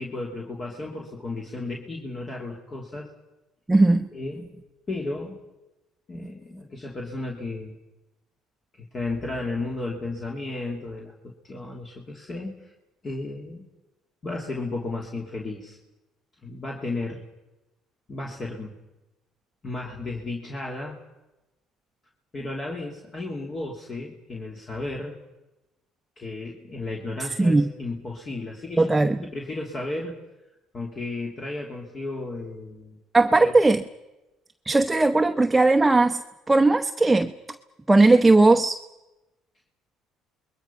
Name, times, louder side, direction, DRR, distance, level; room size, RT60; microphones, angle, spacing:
voice 1, 0.0-3.1 4.1-4.5 4.9-5.4 6.1-7.8 8.7-12.7 13.0-13.7 14.2-15.8 16.4-17.2 18.1-18.8 19.6-21.0 22.3-25.1 26.2-30.2 30.7-33.0 33.4-33.5, left 2 dB, 35° left, -1 dB, 3.0 m, -34 dB
voice 2, 3.7-4.1 27.4-27.7 28.8-29.2 33.1-33.8 34.6-36.2 36.5-37.3 37.9-38.8, right 2 dB, 10° right, 6 dB, 0.9 m, -18 dB
28.0 x 21.5 x 5.8 m, 1.0 s
supercardioid pair, 95°, 0 cm